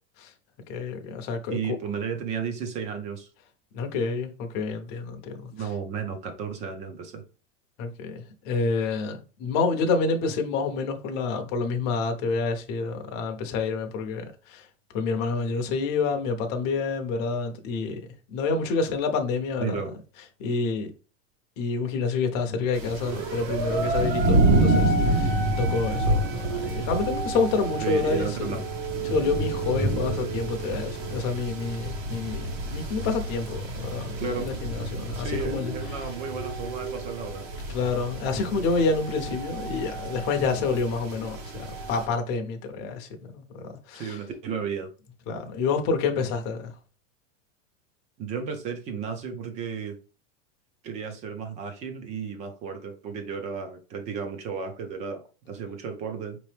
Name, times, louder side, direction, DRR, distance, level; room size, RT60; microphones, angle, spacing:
voice 1, 0.7-1.8 3.7-5.7 7.8-14.7 14.9-19.9 20.4-20.9 21.6-28.6 29.0-36.1 37.7-44.2 45.3-46.7, left 4 dB, 30° left, 0.7 m, -28 dB
voice 2, 1.5-3.3 5.5-7.2 19.6-19.9 27.8-28.6 34.2-34.5 35.1-37.4 43.9-44.9 48.2-50.0 50.8-56.4, right 6 dB, 20° right, 0.5 m, -33 dB
sound 1, 22.7-42.1, right 2 dB, 55° right, 1.4 m, -28 dB
5.2 x 3.0 x 3.3 m
supercardioid pair, 170°, 38 cm